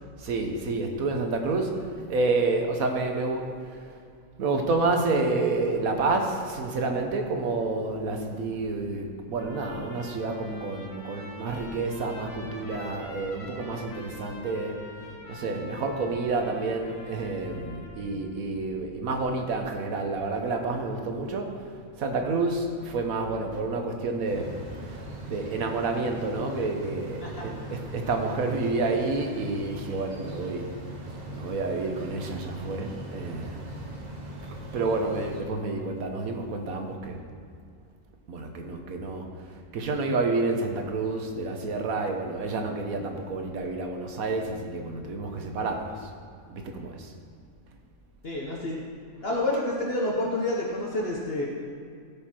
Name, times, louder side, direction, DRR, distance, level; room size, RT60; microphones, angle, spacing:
voice 1, 0.2-4.0 4.4-14.8 15.2-21.7 22.0-24.6 24.9-30.7 31.3-33.6 34.7-37.2 38.3-39.3 39.7-46.1 46.5-47.1, right 3 dB, 85° right, 4 dB, 1.5 m, -29 dB
Trumpet, 9.4-18.2, left 1 dB, 80° left, 1.9 m, -46 dB
sound 1, 24.3-35.4, right 1 dB, 35° right, 1.1 m, -40 dB
voice 2, 48.2-48.8 49.2-51.5, left 1 dB, 50° left, -3 dB, 1.2 m, -28 dB
15.5 x 5.4 x 4.4 m, 2.3 s
omnidirectional pair, 1.4 m